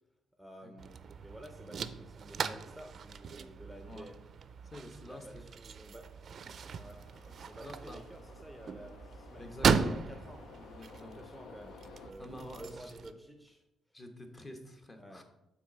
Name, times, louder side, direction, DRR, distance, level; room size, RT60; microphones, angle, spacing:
voice 1, 0.4-4.2 5.0-6.1 6.7-7.0 7.4-10.4 11.0-13.6 15.0-15.2, right 1 dB, ahead, 4 dB, 0.7 m, -51 dB
sound 1, 0.8-13.1, right 6 dB, 55° right, 0.4 m, -37 dB
voice 2, 3.9-4.2 4.7-5.4 7.6-8.0 9.4-10.0 10.6-11.2 12.2-13.0 13.9-15.2, left 1 dB, 30° left, 6 dB, 1.1 m, -48 dB
sound 2, 6.0-12.1, left 5 dB, 75° left, 0.5 m, -54 dB
6.0 x 4.1 x 5.9 m, 0.91 s
cardioid pair, 90°, 0 cm